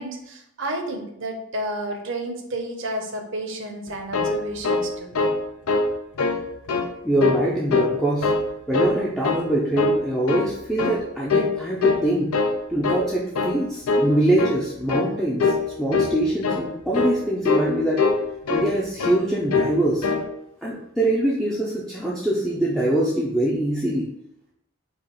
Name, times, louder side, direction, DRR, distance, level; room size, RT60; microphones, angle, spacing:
voice 1, 0.0-5.1, right 1 dB, 55° right, 3 dB, 0.7 m, -31 dB
sound 1, 3.9-5.4 5.7-5.9 6.2-6.9 7.2-7.9 8.2-9.0 9.2-9.5 9.8-10.5 10.8-11.0 11.3-11.6 11.8-12.6 12.8-13.1 13.3-13.6 13.9-14.1 14.4-14.6 14.9-15.1 15.4-15.6 15.9-16.1 16.4-16.6 16.9-17.2 17.4-17.7 18.0-18.7 19.0-19.2 19.5-19.8 20.0-20.3, left 3 dB, 85° left, 0.6 m, -22 dB
voice 2, 7.0-8.3 8.7-12.4 12.7-15.5 15.8-18.0 18.5-20.1 20.6-24.1, right 1 dB, ahead, -6 dB, 0.5 m, -23 dB
4.7 x 2.4 x 4.5 m, 0.79 s
head